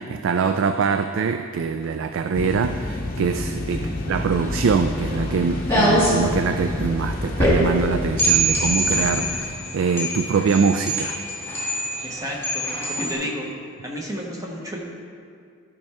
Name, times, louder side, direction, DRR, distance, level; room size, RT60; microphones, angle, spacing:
voice 1, 0.0-11.2, right 5 dB, 65° right, 8 dB, 0.3 m, -23 dB
sound 1, 2.3-9.4, left 1 dB, 45° left, 0.7 m, -29 dB
sound 2, 4.4-13.1, right 1 dB, 10° left, 2.3 m, -24 dB
voice 2, 12.0-13.5 13.8-14.8, equal, 15° right, -1 dB, 1.0 m, -32 dB
12.5 x 5.5 x 3.5 m, 2.2 s
head